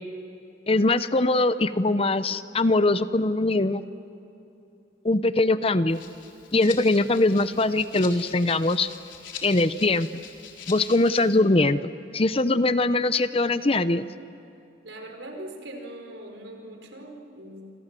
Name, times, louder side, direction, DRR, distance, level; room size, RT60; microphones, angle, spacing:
voice 1, 0.7-3.8 5.0-6.0 6.5-8.9 9.4-10.2 10.7-14.1, left 2 dB, 30° left, 13 dB, 0.7 m, -22 dB
Rattle (instrument), 5.9-11.4, left 7 dB, 90° left, 3.9 m, -43 dB
voice 2, 14.8-17.7, right 1 dB, 75° right, 3 dB, 5.0 m, -41 dB
28.0 x 27.0 x 7.6 m, 2.8 s
head